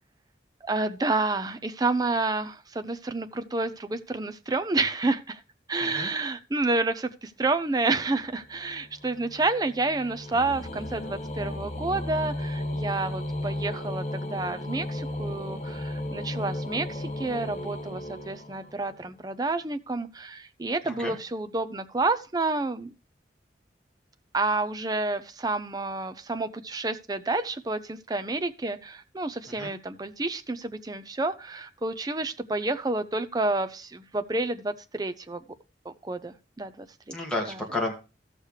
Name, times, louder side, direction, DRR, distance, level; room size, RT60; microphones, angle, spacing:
voice 1, 0.6-5.4 5.7-22.9 24.3-35.4 36.0-37.2 37.5-37.6, right 3 dB, 20° right, 10 dB, 0.5 m, -29 dB
sound 1, 8.0-19.0, left 1 dB, 40° left, 1.2 m, -35 dB
voice 2, 20.9-21.2 29.6-29.7 37.1-37.9, left 2 dB, 5° left, -1 dB, 2.1 m, -31 dB
14.0 x 6.5 x 3.2 m, 0.31 s
head